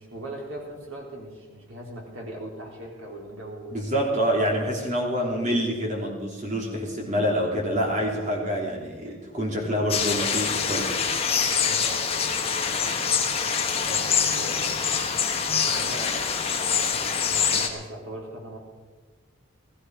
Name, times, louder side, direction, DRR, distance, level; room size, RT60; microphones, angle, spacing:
voice 1, 0.0-3.9 4.3-4.4 9.1-9.2 11.6-12.5 12.8-12.9 13.8-14.8 15.5-16.5 17.2-18.6, right 1 dB, 75° right, -1 dB, 3.7 m, -40 dB
voice 2, 3.7-10.9, equal, 35° right, -1 dB, 3.2 m, -26 dB
sound 1, 9.9-17.7, left 6 dB, 30° left, 1.2 m, -25 dB
16.5 x 14.5 x 4.8 m, 1.3 s
head